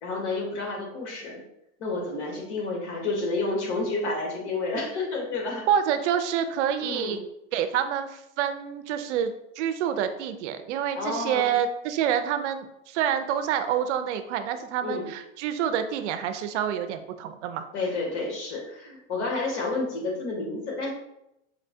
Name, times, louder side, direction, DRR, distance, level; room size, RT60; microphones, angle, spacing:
voice 1, 0.0-1.4 1.8-5.7 6.8-7.2 11.0-11.5 14.8-15.1 17.7-20.9, left 3 dB, 75° left, -1 dB, 1.3 m, -30 dB
voice 2, 5.7-7.2 7.5-17.6, right 9 dB, 75° right, 9 dB, 0.5 m, -27 dB
4.3 x 2.1 x 2.6 m, 0.82 s
hypercardioid pair, 115°, 35 cm